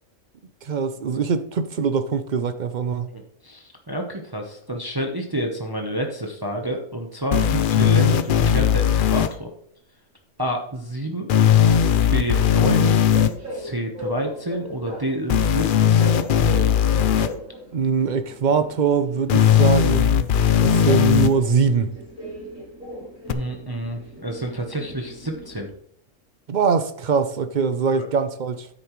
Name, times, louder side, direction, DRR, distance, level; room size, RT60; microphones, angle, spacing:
voice 1, 0.6-3.1 17.7-20.3 20.6-21.9 26.5-28.7, right 6 dB, 50° right, 10 dB, 0.6 m, -22 dB
voice 2, 3.1-9.5 10.4-11.3 12.1-13.0 13.5-16.1 23.3-25.7 27.9-28.1, right 1 dB, 20° right, 2 dB, 0.9 m, -29 dB
sound 1, 7.3-9.3 11.3-13.3 15.3-17.3 19.3-21.3 23.3-23.4, left 8 dB, 60° left, 0.5 m, -18 dB
Train, 12.0-25.7, equal, 80° right, 4.1 m, -38 dB
9.9 x 8.5 x 3.1 m, 0.68 s
omnidirectional pair, 1.4 m